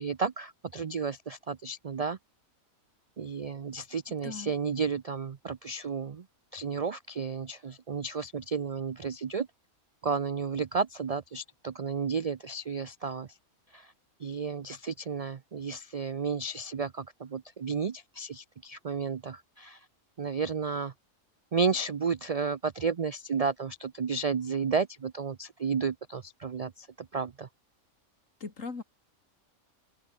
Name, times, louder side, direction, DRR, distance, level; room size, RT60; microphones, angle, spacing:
voice 1, 0.0-2.2 3.2-6.3 6.5-9.5 10.0-13.4 13.7-13.9 14.2-19.9 20.2-20.9 21.5-27.5, right 5 dB, 65° right, 0.3 m, -32 dB
voice 2, 28.4-28.8, left 4 dB, 65° left, 3.0 m, -38 dB
open air
omnidirectional pair, 1.5 m